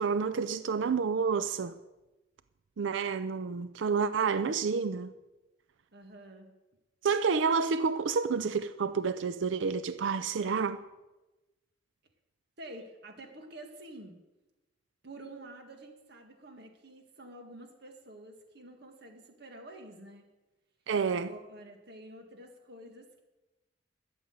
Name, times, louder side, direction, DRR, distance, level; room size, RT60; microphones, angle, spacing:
voice 1, 0.0-1.7 2.8-5.1 7.0-10.8 20.9-21.3, right 5 dB, 80° right, 0.5 m, -29 dB
voice 2, 5.9-6.5 12.6-14.2 15.0-20.3 21.1-23.2, right 1 dB, 60° right, 2.0 m, -49 dB
12.5 x 6.8 x 7.9 m
head